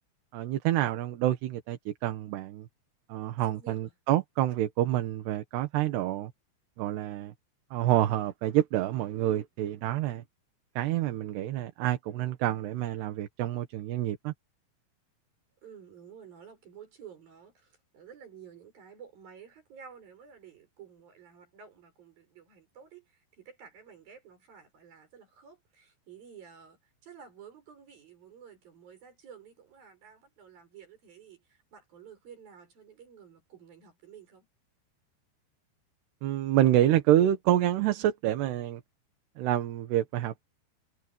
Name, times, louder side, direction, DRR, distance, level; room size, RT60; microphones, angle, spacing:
voice 1, 0.3-2.7 3.1-6.3 6.8-7.3 7.7-10.2 10.8-14.3 36.2-38.8 39.4-40.4, right 13 dB, 75° right, 3.5 m, -27 dB
voice 2, 3.4-3.9 5.7-6.3 15.6-34.5, right 7 dB, 55° right, 8.3 m, -52 dB
omnidirectional pair, 4.9 m